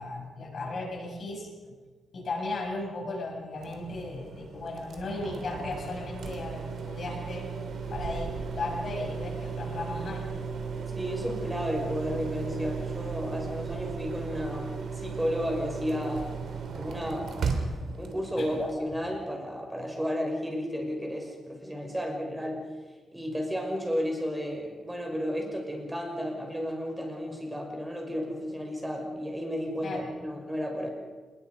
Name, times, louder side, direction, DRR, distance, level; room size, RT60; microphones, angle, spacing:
voice 1, 0.0-1.7 2.1-7.5 7.9-10.3 18.4-18.6 29.8-30.1, left 2 dB, 45° left, -1 dB, 7.5 m, -36 dB
sound 1, 3.6-18.8, right 5 dB, 65° right, 3.2 m, -36 dB
voice 2, 11.0-16.4 16.7-17.3 17.9-22.6 23.1-30.9, equal, 5° right, 1 dB, 5.5 m, -32 dB
28.0 x 21.0 x 5.4 m, 1.4 s
wide cardioid pair, 140°, 0 cm